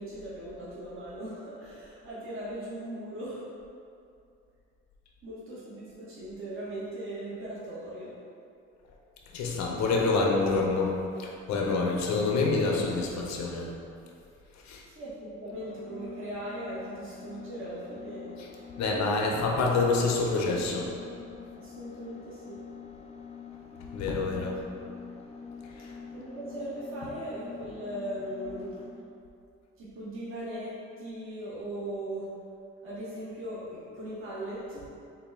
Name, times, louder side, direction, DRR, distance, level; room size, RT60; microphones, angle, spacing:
voice 1, 0.0-3.5 5.2-8.1 14.9-18.4 19.2-19.3 21.5-22.6 26.1-28.8 29.8-32.3 32.8-34.8, right 1 dB, 45° right, -9 dB, 1.1 m, -39 dB
voice 2, 9.3-13.7 14.6-14.8 18.4-18.5 18.8-20.9 23.9-24.6 25.8-26.0, left 3 dB, 65° left, -1 dB, 0.6 m, -27 dB
sound 1, 15.5-29.0, left 6 dB, 20° left, 0.4 m, -45 dB
4.0 x 2.2 x 3.4 m, 2.5 s
cardioid pair, 90°, 30 cm